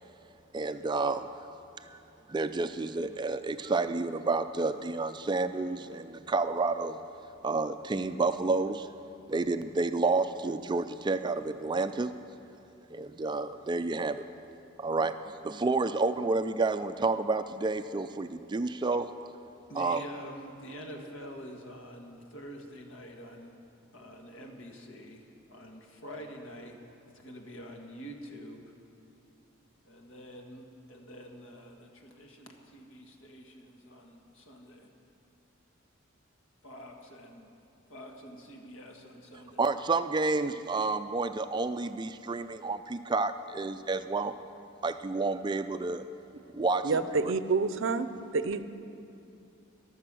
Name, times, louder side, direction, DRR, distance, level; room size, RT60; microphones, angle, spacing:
voice 1, 0.5-1.3 1.7-2.0 2.3-7.0 7.4-8.9 9.3-12.1 12.9-14.2 14.8-15.2 15.4-19.1 19.8-20.0 39.6-44.3 44.8-46.0 46.5-47.3, right 3 dB, 20° right, 10 dB, 0.3 m, -30 dB
voice 2, 19.7-23.6 23.9-26.8 27.1-28.7 29.8-34.9 36.6-37.5 37.9-39.7, equal, 70° left, 2 dB, 1.6 m, -47 dB
voice 3, 46.8-48.1 48.3-48.6, right 4 dB, 65° right, 12 dB, 0.6 m, -28 dB
15.5 x 11.5 x 6.2 m, 2.7 s
head